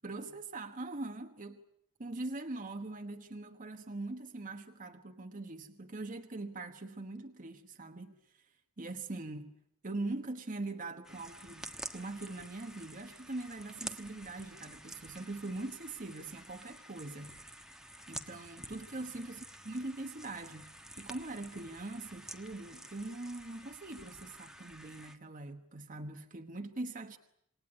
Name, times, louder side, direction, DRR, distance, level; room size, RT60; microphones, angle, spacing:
voice 1, 0.0-1.6 2.0-8.5 8.8-9.5 9.8-17.3 18.1-20.7 21.0-27.2, right 2 dB, 35° right, 1.3 m, -42 dB
sound 1, 11.0-25.2, right 1 dB, 5° right, 1.3 m, -49 dB
28.0 x 19.5 x 9.9 m
head